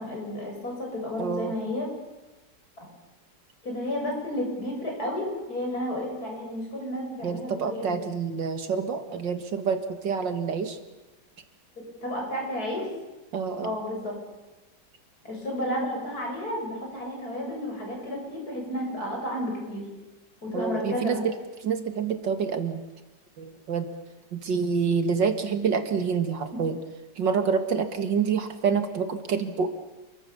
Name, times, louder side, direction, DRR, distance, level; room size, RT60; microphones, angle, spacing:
voice 1, 0.0-1.9 3.6-8.0 11.8-12.9 13.6-14.2 15.2-19.8 20.4-21.2, left 1 dB, 55° left, 0 dB, 7.9 m, -32 dB
voice 2, 1.2-1.6 7.2-10.8 13.3-13.8 20.5-21.3 21.6-22.8 23.4-23.9 24.3-26.8 27.2-29.7, right 6 dB, 85° right, 8 dB, 2.5 m, -27 dB
28.5 x 23.0 x 7.1 m, 1.1 s
omnidirectional pair, 1.9 m